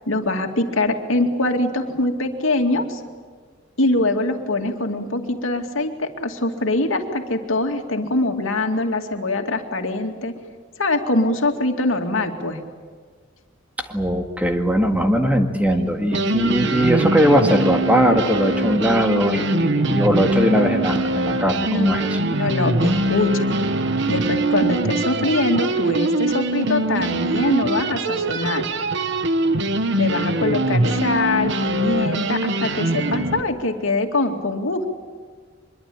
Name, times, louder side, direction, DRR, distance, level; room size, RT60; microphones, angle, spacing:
voice 1, 0.1-3.0 3.8-10.3 10.8-12.6 21.7-21.9 22.3-23.6 24.1-28.7 30.0-34.9, left 2 dB, 85° left, 4 dB, 2.5 m, -23 dB
voice 2, 13.8-22.1, equal, 5° right, 4 dB, 1.8 m, -20 dB
sound 1, 15.7-15.8 16.1-33.4, right 2 dB, 65° right, 1.2 m, -22 dB
24.5 x 22.0 x 8.7 m, 1.5 s
head